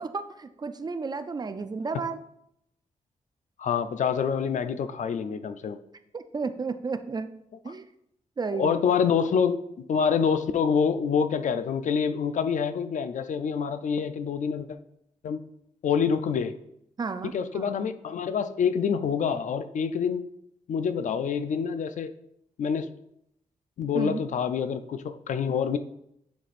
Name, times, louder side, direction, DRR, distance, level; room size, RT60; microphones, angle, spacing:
voice 1, 0.0-2.2 6.1-7.3 7.6-7.9 8.4-8.8 17.0-17.7 23.9-24.2, right 4 dB, 30° right, 9 dB, 0.3 m, -32 dB
voice 2, 3.6-5.8 8.6-9.6 9.9-14.8 15.2-15.4 15.8-16.5 17.2-20.2 20.7-22.1 22.6-22.9 23.8-25.8, left 6 dB, 65° left, 11 dB, 0.4 m, -26 dB
9.3 x 4.1 x 2.5 m, 0.76 s
wide cardioid pair, 140°, 14 cm